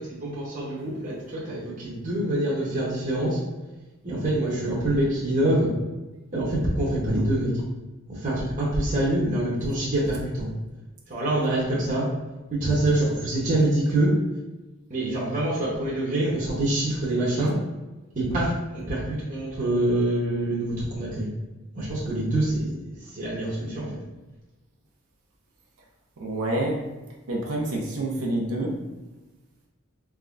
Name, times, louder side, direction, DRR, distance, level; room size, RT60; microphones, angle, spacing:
voice 1, 0.0-3.4 4.0-5.7 6.3-7.5 8.1-10.5 11.1-12.1 12.5-14.1 14.9-17.5 18.2-21.3 21.7-22.7 23.0-24.0, right 1 dB, 40° right, -7 dB, 0.8 m, -25 dB
voice 2, 26.2-26.9 27.3-28.8, right 1 dB, 80° right, -2 dB, 0.7 m, -27 dB
3.6 x 3.1 x 2.4 m, 1.1 s
head